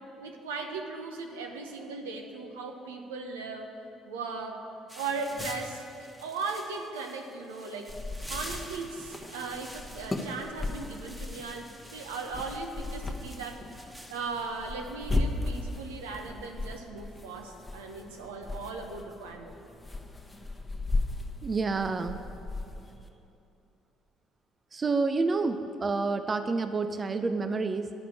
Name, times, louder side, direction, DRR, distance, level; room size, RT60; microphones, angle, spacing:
voice 1, 0.2-3.7 4.0-4.6 4.9-7.9 8.3-13.6 14.1-19.7, right 4 dB, 80° right, 3 dB, 0.9 m, -38 dB
sound 1, 4.9-14.8, equal, 10° right, 1.4 m, -47 dB
sound 2, 7.9-23.1, left 2 dB, 15° left, 1.1 m, -36 dB
voice 2, 21.4-22.2 24.7-27.9, right 4 dB, 30° right, 9 dB, 0.5 m, -28 dB
10.5 x 5.9 x 8.5 m, 2.8 s
figure-of-eight pair, 50°, 0 cm